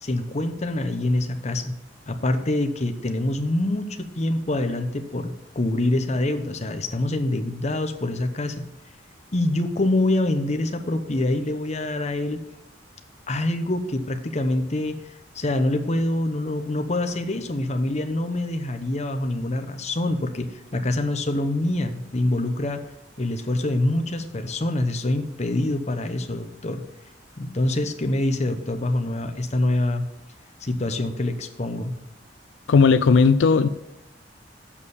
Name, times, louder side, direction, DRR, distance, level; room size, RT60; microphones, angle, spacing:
voice 1, 0.0-1.7 2.1-8.7 9.3-12.4 13.3-15.0 15.3-22.8 23.2-26.8 27.4-30.1 30.6-32.0, left 1 dB, 40° left, 0.9 m, -25 dB
voice 2, 32.7-33.7, left 5 dB, 85° left, 0.4 m, -16 dB
7.2 x 6.5 x 7.1 m
head